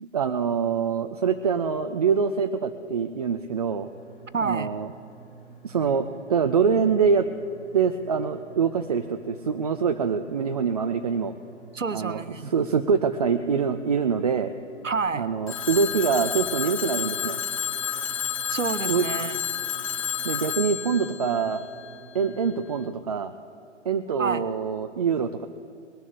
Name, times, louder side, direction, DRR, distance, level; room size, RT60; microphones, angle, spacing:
voice 1, 0.0-3.9 4.4-4.9 5.6-7.3 7.7-11.3 11.9-14.5 15.1-17.4 18.8-19.1 20.2-21.6 22.1-23.3 23.9-25.5, right 6 dB, 35° right, 7 dB, 0.4 m, -25 dB
sound 1, 3.7-22.5, right 3 dB, 45° left, 3.9 m, -49 dB
voice 2, 4.3-4.7 11.7-12.5 14.8-15.3 18.5-19.4 24.2-24.4, right 4 dB, 85° right, 14 dB, 0.8 m, -28 dB
Telephone, 15.5-22.3, left 9 dB, 30° left, 0.5 m, -30 dB
20.0 x 7.1 x 8.4 m, 2.5 s
figure-of-eight pair, 120°, 37 cm